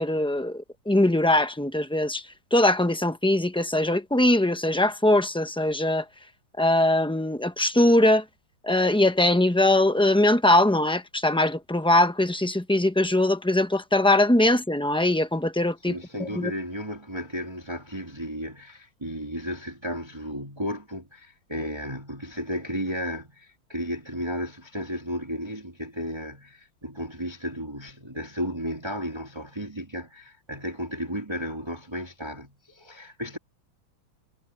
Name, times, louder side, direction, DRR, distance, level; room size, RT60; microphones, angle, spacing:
voice 1, 0.0-2.2 2.5-6.0 6.6-8.2 8.6-15.9 16.2-16.5, left 1 dB, 5° left, 0.4 m, -21 dB
voice 2, 15.9-33.4, equal, 15° right, 2.5 m, -34 dB
omnidirectional pair, 2.2 m